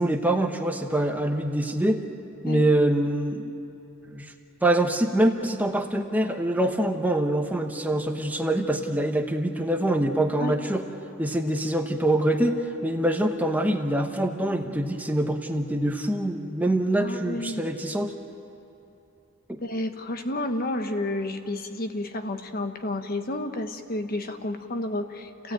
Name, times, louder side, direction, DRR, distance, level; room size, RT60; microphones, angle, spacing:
voice 1, 0.0-2.0 2.4-3.5 4.1-4.3 4.6-10.8 11.2-18.1 19.5-19.6, right 1 dB, 10° right, 4 dB, 0.9 m, -25 dB
voice 2, 17.0-17.7 19.6-25.5, left 1 dB, 45° left, 7 dB, 1.3 m, -31 dB
28.5 x 16.5 x 9.1 m, 2.9 s
head